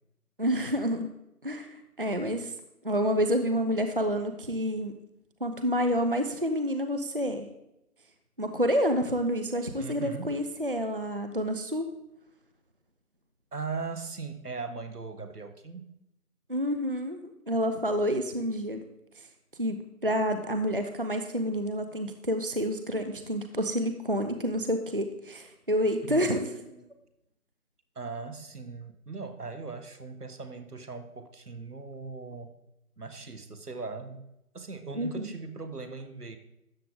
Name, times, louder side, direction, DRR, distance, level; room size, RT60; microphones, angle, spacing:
voice 1, 0.4-1.1 1.4-2.5 2.8-5.0 5.4-7.5 8.4-11.9 16.5-17.2 17.5-18.8 19.6-26.5 35.0-35.3, equal, 40° right, 7 dB, 0.6 m, -28 dB
voice 2, 9.8-10.4 13.5-16.0 26.1-26.9 27.9-32.5 33.0-36.4, right 4 dB, 85° right, 9 dB, 1.5 m, -39 dB
13.0 x 8.1 x 3.8 m, 0.86 s
figure-of-eight pair, 165°, 45 cm